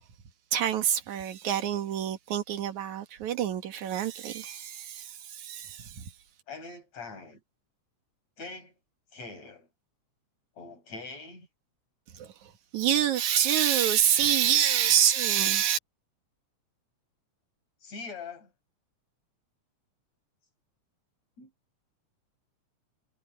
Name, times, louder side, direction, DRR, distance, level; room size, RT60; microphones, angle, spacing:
voice 1, 0.5-6.1 12.1-15.8, right 10 dB, 75° right, 3.0 m, -27 dB
voice 2, 6.5-7.4 8.4-8.8 9.1-9.7 10.6-11.5 17.8-18.5 21.4-21.5, left 4 dB, 65° left, 8.8 m, -43 dB
omnidirectional pair, 3.4 m